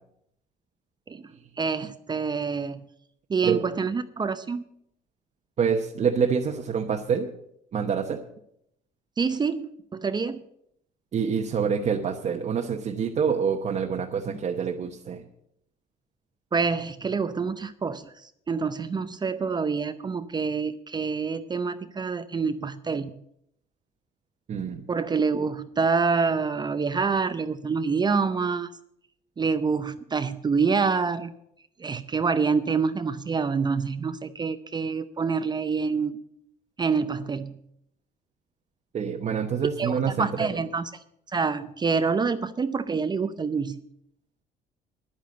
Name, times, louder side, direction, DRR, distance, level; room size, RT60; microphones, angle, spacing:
voice 1, 1.6-2.8 3.3-4.6 9.2-10.4 16.5-23.2 24.9-28.7 29.4-31.3 31.8-36.2 36.8-37.6 39.8-40.9 41.3-43.8, right 5 dB, 25° right, 11 dB, 0.6 m, -27 dB
voice 2, 5.6-7.3 7.7-8.2 11.1-15.2 24.5-24.8 38.9-40.5, right 6 dB, 45° right, 1 dB, 1.0 m, -26 dB
10.5 x 9.3 x 7.7 m, 0.74 s
cardioid pair, 110°, 17 cm